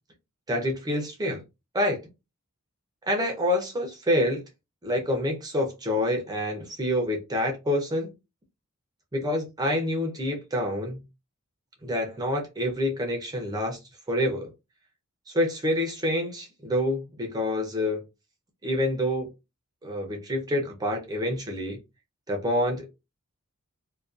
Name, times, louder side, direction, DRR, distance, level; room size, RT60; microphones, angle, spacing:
voice 1, 0.5-1.4 1.7-2.0 3.1-4.4 4.8-8.1 9.1-11.0 11.8-13.8 14.1-14.5 15.3-18.0 18.6-19.3 19.8-21.8 22.3-22.9, left 1 dB, 20° right, 0.5 m, -27 dB
2.4 x 2.2 x 2.3 m
head